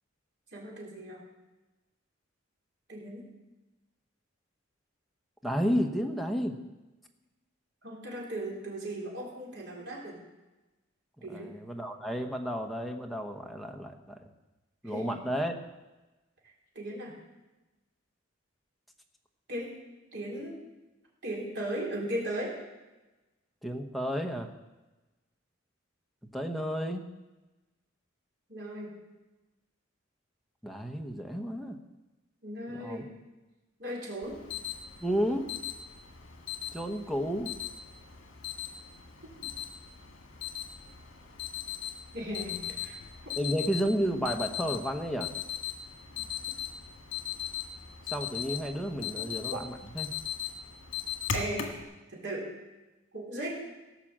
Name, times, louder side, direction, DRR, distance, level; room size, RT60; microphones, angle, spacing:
voice 1, 0.5-1.2 2.9-3.3 7.8-10.2 11.2-11.6 14.8-15.2 16.8-17.2 19.5-19.8 20.1-20.6 21.2-22.6 28.5-28.9 32.4-33.1 33.8-34.4 42.1-43.0 49.5-49.6 51.3-51.7 52.1-52.5 53.1-53.5, right 1 dB, 60° right, -3 dB, 3.8 m, -37 dB
voice 2, 5.4-6.6 11.3-14.2 14.8-15.5 23.6-24.5 26.3-27.1 30.6-31.8 32.7-33.0 35.0-35.5 36.7-37.5 43.4-45.3 48.0-50.1, equal, ahead, 2 dB, 1.0 m, -32 dB
Alarm, 34.2-51.8, left 9 dB, 70° left, 1.8 m, -39 dB
17.0 x 5.8 x 7.4 m, 1.1 s
head